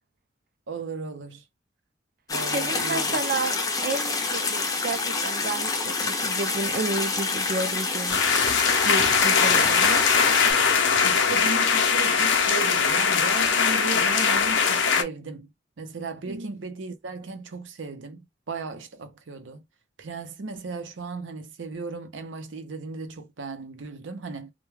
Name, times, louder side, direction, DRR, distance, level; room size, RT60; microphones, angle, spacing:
voice 1, 0.7-1.4 2.3-3.2 11.0-15.5 15.8-19.6 20.0-24.5, right 4 dB, 90° right, 0.6 m, -36 dB
sound 1, 2.3-10.5, left 3 dB, 20° left, 0.4 m, -27 dB
voice 2, 2.5-8.5 8.8-10.0 16.3-16.5, right 3 dB, 50° right, 0.4 m, -31 dB
sound 2, 8.1-15.0, left 6 dB, 85° left, 0.5 m, -21 dB
2.2 x 2.2 x 3.1 m
head